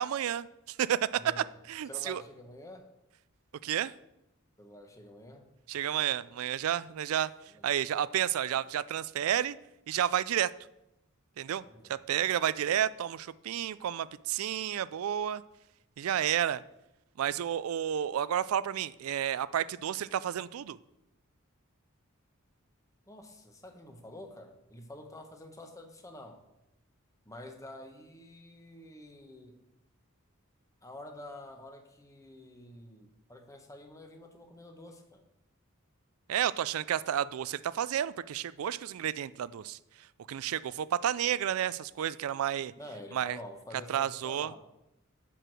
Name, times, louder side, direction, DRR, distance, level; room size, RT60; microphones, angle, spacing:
voice 1, 0.0-2.2 3.6-3.9 5.7-7.3 7.6-9.6 9.9-10.5 11.4-11.6 11.9-15.4 16.0-16.6 17.2-20.8 36.3-39.8 40.3-42.7 43.1-43.4 43.9-44.5, right 10 dB, 80° right, 17 dB, 0.3 m, -31 dB
voice 2, 1.9-2.9 4.6-5.4 7.5-7.8 11.4-12.0 23.1-26.4 27.2-29.5 30.8-35.2 42.8-44.6, left 1 dB, 15° left, 4 dB, 1.0 m, -48 dB
9.9 x 4.7 x 6.2 m, 0.90 s
head